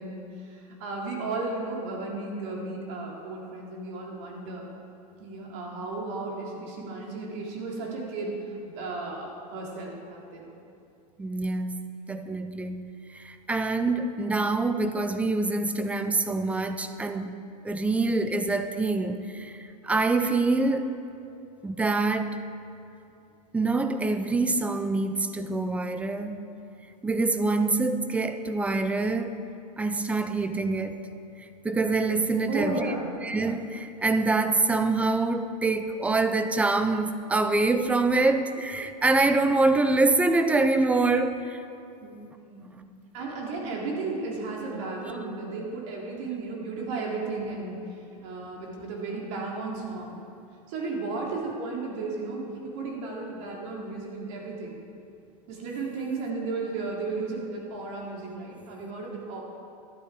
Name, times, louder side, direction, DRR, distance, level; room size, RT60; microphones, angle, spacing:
voice 1, 0.0-4.7 5.2-8.3 8.6-10.5 32.5-33.0 42.0-42.2 42.5-42.8 43.1-50.2 50.7-54.8 55.5-59.4, right 3 dB, 50° right, -2 dB, 3.0 m, -34 dB
voice 2, 11.2-17.4 17.6-21.0 21.6-22.4 23.5-26.5 27.0-29.4 29.8-31.0 31.4-32.9 33.2-41.6, right 3 dB, 5° right, 9 dB, 0.5 m, -25 dB
12.5 x 11.0 x 4.8 m, 2.6 s
supercardioid pair, 140°, 20 cm